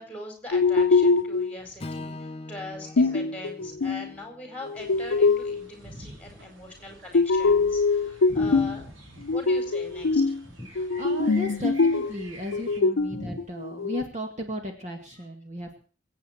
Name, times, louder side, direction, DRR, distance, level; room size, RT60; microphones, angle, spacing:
voice 1, 0.0-8.9 9.3-10.7 13.2-13.4, left 1 dB, 5° left, 3 dB, 4.5 m, -41 dB
sound 1, 0.5-1.6 3.0-4.1 4.6-5.6 7.1-8.8 9.3-10.4 10.8-12.3 12.5-14.0, left 4 dB, 85° left, 0.6 m, -23 dB
Strum, 1.8-6.1, left 2 dB, 30° left, 0.6 m, -43 dB
sound 2, 4.7-12.8, right 1 dB, 85° right, 3.3 m, -51 dB
voice 2, 5.8-6.2 8.3-8.7 11.0-15.8, equal, 35° right, 3 dB, 2.0 m, -35 dB
24.5 x 8.7 x 4.5 m, 0.42 s
head